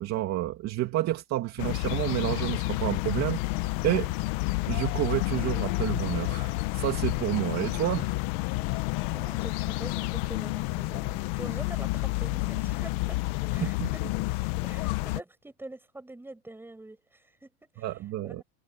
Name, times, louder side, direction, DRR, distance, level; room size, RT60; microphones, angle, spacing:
voice 1, 0.0-4.1 4.7-8.1 13.6-13.9 17.8-18.4, right 15 dB, 35° right, 2.4 m, -30 dB
sound 1, 1.6-15.2, left 21 dB, 45° left, 0.9 m, -30 dB
voice 2, 9.1-13.2 13.5-14.0 14.6-17.8 18.2-18.4, right 2 dB, 5° right, 6.3 m, -45 dB
supercardioid pair, 160°, 46 cm